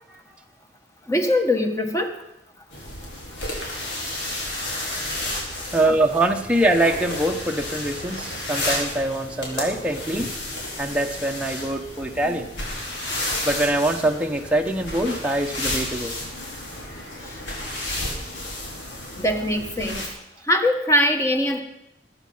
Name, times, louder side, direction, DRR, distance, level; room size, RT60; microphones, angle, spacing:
voice 1, 1.1-2.1 12.2-12.3 19.2-20.0 20.5-21.6, left 1 dB, 15° left, 5 dB, 1.6 m, -21 dB
sound 1, 2.7-20.1, left 1 dB, 85° left, 4.4 m, -32 dB
voice 2, 5.7-10.3 10.8-12.5 13.4-16.1, right 1 dB, 5° right, 2 dB, 1.0 m, -23 dB
20.5 x 9.6 x 5.6 m, 0.86 s
head